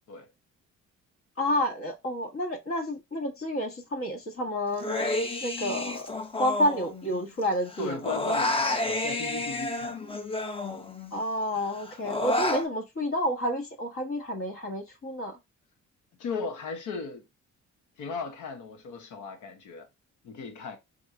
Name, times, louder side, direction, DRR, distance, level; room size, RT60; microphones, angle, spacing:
voice 1, 1.4-5.0 5.4-6.1 6.4-8.0 11.1-15.4, equal, 45° left, 1.4 m, -30 dB
Human voice, 4.8-7.4 7.7-11.2 11.6-12.7, left 2 dB, 20° left, 0.7 m, -30 dB
voice 2, 7.8-10.0 16.2-17.2 18.0-19.9 20.2-20.8, left 4 dB, 80° left, 1.1 m, -36 dB
4.8 x 3.6 x 2.2 m
cardioid pair, 90°, 30 cm